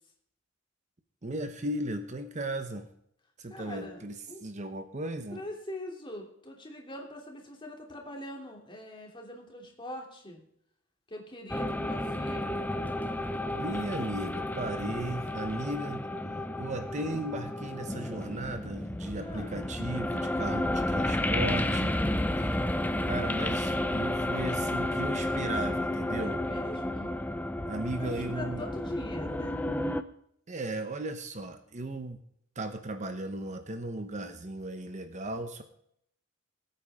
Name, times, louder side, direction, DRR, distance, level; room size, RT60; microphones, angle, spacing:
voice 1, 1.2-2.9 3.4-5.4 13.5-16.1 16.6-22.0 22.4-22.6 23.1-26.4 27.6-28.7 30.5-32.2 32.6-35.6, right 1 dB, 35° right, 7 dB, 1.0 m, -36 dB
voice 2, 3.5-4.0 4.3-4.4 5.3-10.4 11.1-12.6 19.1-19.6 26.2-27.2 28.0-29.5, left 1 dB, 25° left, 1 dB, 2.9 m, -43 dB
sound 1, 11.5-30.0, left 1 dB, 10° left, 0.7 m, -31 dB
21.0 x 8.7 x 3.6 m, 0.71 s
head